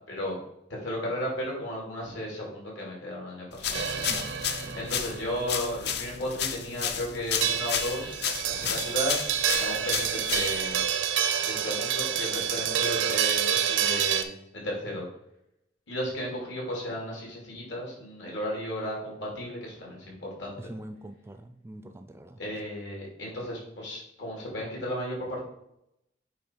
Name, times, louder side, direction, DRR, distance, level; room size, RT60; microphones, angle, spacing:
voice 1, 0.7-3.8 4.7-8.2 8.5-10.8 11.4-15.1 15.9-20.7 22.4-25.4, equal, 75° left, -3 dB, 2.6 m, -34 dB
sound 1, 3.6-10.8, left 8 dB, 60° left, 0.6 m, -32 dB
sound 2, 3.7-14.2, right 9 dB, 75° right, 0.5 m, -28 dB
voice 2, 4.1-4.8 20.6-22.4, right 1 dB, 15° right, 8 dB, 0.3 m, -44 dB
8.5 x 3.1 x 4.4 m, 0.80 s
head